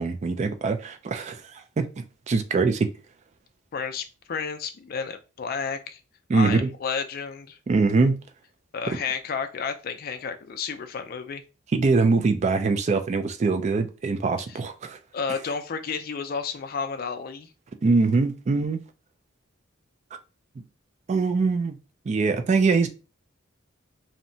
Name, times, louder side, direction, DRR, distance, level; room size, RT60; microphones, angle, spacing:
voice 1, 0.0-1.4 1.8-1.9 2.3-2.9 6.3-6.7 7.7-8.2 8.9-9.0 11.7-15.0 17.8-18.8 21.1-21.8 22.1-22.9, right 4 dB, 35° right, 0.3 m, -22 dB
voice 2, 3.7-6.0 6.3-7.6 8.7-11.4 14.5-14.6 15.1-17.5, left 5 dB, 50° left, 0.4 m, -31 dB
2.7 x 2.1 x 2.6 m
head